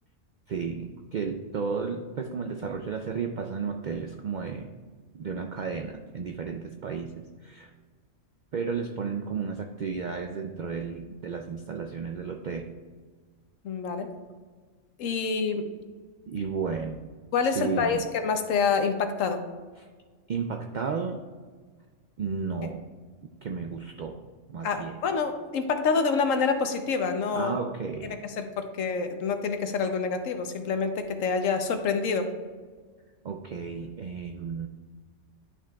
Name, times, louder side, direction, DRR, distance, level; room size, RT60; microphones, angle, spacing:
voice 1, 0.5-4.7 5.1-7.7 8.5-12.7 16.3-17.1 17.4-18.1 19.8-19.9 20.3-21.2 22.2-22.8 23.4-25.0 27.3-28.1 33.2-34.7, right 5 dB, 75° right, 4 dB, 0.4 m, -33 dB
voice 2, 13.6-14.1 15.0-15.7 17.3-19.4 24.6-27.5 28.0-32.3, left 5 dB, 80° left, 7 dB, 1.1 m, -27 dB
11.5 x 5.9 x 2.3 m, 1.5 s
omnidirectional pair, 1.3 m